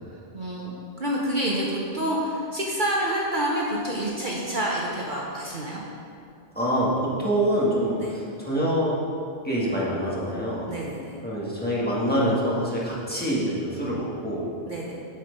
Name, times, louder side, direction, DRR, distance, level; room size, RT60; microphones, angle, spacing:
voice 1, 0.3-5.8 8.0-8.1 10.7-11.2 14.7-14.9, right 1 dB, 45° right, -4 dB, 1.1 m, -28 dB
voice 2, 6.5-9.0 9.4-10.7 11.2-14.5, equal, 10° left, -7 dB, 1.7 m, -25 dB
7.8 x 7.5 x 5.2 m, 2.5 s
omnidirectional pair, 1.2 m